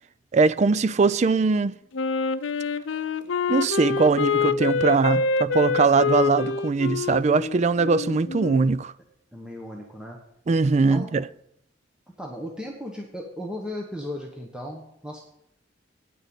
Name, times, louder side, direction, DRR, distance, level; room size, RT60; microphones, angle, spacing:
voice 1, 0.3-1.7 3.5-8.9 10.5-11.2, right 4 dB, 35° right, 0.4 m, -21 dB
Wind instrument woodwind instrument, 1.9-8.7, left 5 dB, 90° left, 0.6 m, -26 dB
voice 2, 9.3-10.2 10.9-11.1 12.2-15.2, left 1 dB, 5° right, 1.2 m, -36 dB
9.3 x 6.6 x 8.0 m
head